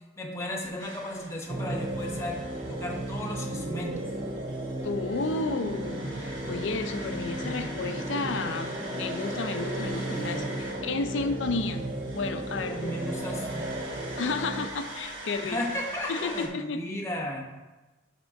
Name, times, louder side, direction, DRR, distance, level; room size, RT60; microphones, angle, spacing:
voice 1, 0.2-2.4 2.7-4.0 12.6-13.7 15.4-17.4, left 1 dB, 15° left, -1 dB, 1.0 m, -34 dB
sound 1, 0.8-16.5, right 1 dB, 75° right, 1.2 m, -43 dB
sound 2, 1.5-14.7, right 1 dB, 30° right, 0.5 m, -34 dB
voice 2, 4.8-11.8 12.1-13.0 14.2-15.6 16.1-16.8, left 3 dB, 70° left, 8 dB, 0.5 m, -32 dB
Piano, 10.1-11.1, right 1 dB, 40° left, 1.3 m, -41 dB
6.1 x 3.7 x 5.2 m, 1.1 s
head